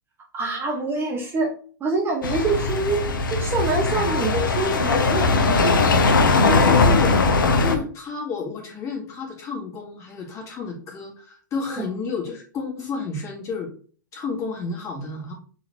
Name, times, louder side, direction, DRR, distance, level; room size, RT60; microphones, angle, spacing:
voice 1, 0.3-1.5 1.8-3.0 3.3-5.8 6.3-7.3 11.7-11.8, right 3 dB, 20° right, 0 dB, 1.0 m, -26 dB
sound 1, 2.2-7.8, left 3 dB, 80° left, 0.9 m, -19 dB
voice 2, 6.6-7.2 7.6-13.7 14.1-15.3, left 4 dB, 30° left, -2 dB, 2.0 m, -31 dB
4.0 x 3.9 x 3.5 m, 0.41 s
hypercardioid pair, 120°, 11 cm